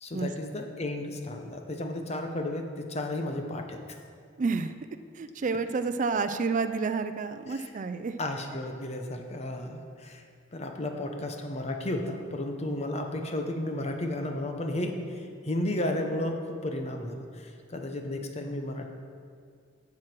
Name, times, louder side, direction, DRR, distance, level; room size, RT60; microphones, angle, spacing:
voice 1, 0.0-3.8 7.5-7.7 8.2-10.2 10.5-18.9, left 1 dB, 35° left, 4 dB, 0.9 m, -33 dB
voice 2, 4.4-4.7 5.2-8.2, right 4 dB, 45° right, 10 dB, 0.4 m, -29 dB
7.7 x 7.3 x 6.1 m, 2.2 s
head